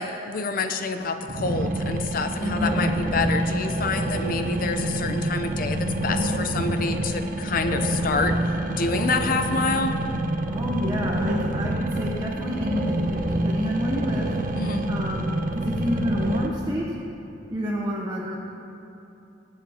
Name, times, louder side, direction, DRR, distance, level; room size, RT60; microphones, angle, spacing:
voice 1, 0.0-8.4 8.7-9.9 14.6-14.9, left 3 dB, 50° left, 7 dB, 0.6 m, -27 dB
sound 1, 1.3-16.5, right 1 dB, 50° right, 0.7 m, -27 dB
voice 2, 2.4-2.9 10.5-14.3 14.9-17.0 17.5-18.3, equal, 20° right, -3 dB, 0.9 m, -29 dB
21.5 x 7.8 x 2.9 m, 2.8 s
head